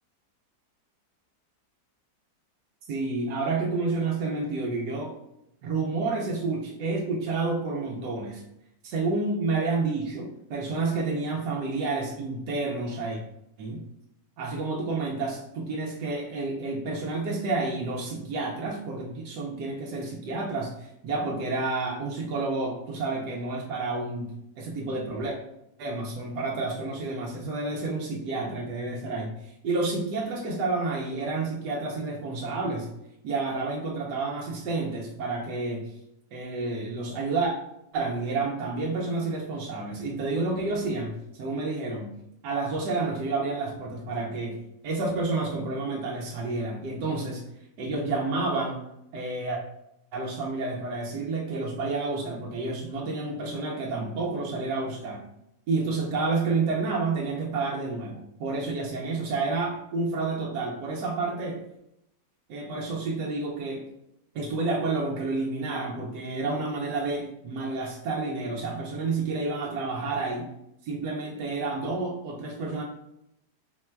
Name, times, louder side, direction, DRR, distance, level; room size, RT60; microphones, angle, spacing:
voice 1, 2.9-5.1 5.6-8.4 8.8-13.2 13.6-13.8 14.4-25.4 25.8-32.9 33.2-35.9 36.3-37.5 37.9-42.1 42.4-44.6 44.8-47.4 47.8-48.8 49.1-49.6 50.1-55.2 55.7-61.6 62.5-63.9 64.3-70.5 70.8-72.8, right 3 dB, 80° right, -2 dB, 1.3 m, -30 dB
4.1 x 2.2 x 4.4 m, 0.81 s
omnidirectional pair, 1.8 m